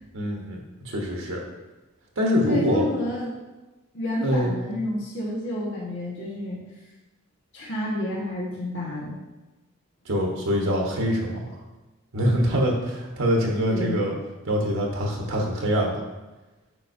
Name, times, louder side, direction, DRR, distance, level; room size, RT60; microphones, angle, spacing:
voice 1, 0.1-1.4 2.2-2.9 4.2-4.5 10.0-11.5 12.1-14.1 14.4-16.0, equal, 70° right, -1 dB, 1.2 m, -24 dB
voice 2, 2.5-3.3 3.9-6.6 7.5-9.2 13.7-14.0, left 1 dB, 60° left, -5 dB, 1.5 m, -30 dB
9.6 x 5.1 x 2.7 m, 1.1 s
head